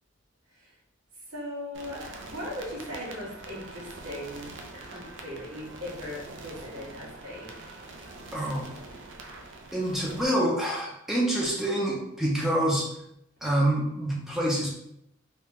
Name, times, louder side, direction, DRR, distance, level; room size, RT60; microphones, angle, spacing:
voice 1, 1.3-7.6, left 1 dB, 85° right, -7 dB, 1.3 m, -39 dB
sound 1, 1.7-10.2, right 2 dB, 65° right, 0.4 m, -44 dB
voice 2, 8.3-8.7 9.7-12.9 13.4-14.7, right 1 dB, ahead, -4 dB, 0.6 m, -26 dB
2.9 x 2.2 x 3.4 m, 0.79 s
head